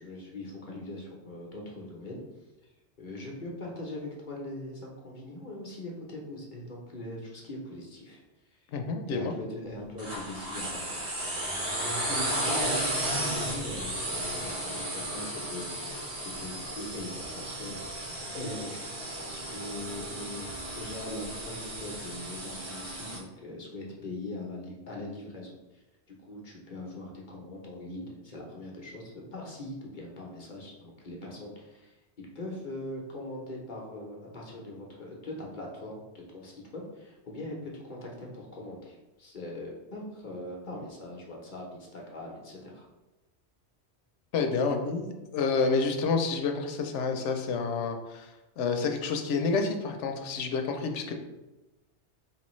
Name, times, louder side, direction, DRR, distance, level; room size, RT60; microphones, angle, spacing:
voice 1, 0.0-2.2 3.0-8.2 9.1-11.0 11.8-17.8 18.1-42.9, left 1 dB, 45° left, -2 dB, 0.9 m, -41 dB
voice 2, 8.7-9.3 44.3-45.1 45.3-51.1, left 4 dB, 90° left, 5 dB, 0.9 m, -29 dB
sound 1, 10.0-23.2, right 1 dB, 55° right, 1.5 m, -34 dB
4.4 x 3.3 x 3.1 m, 1.1 s
omnidirectional pair, 1.2 m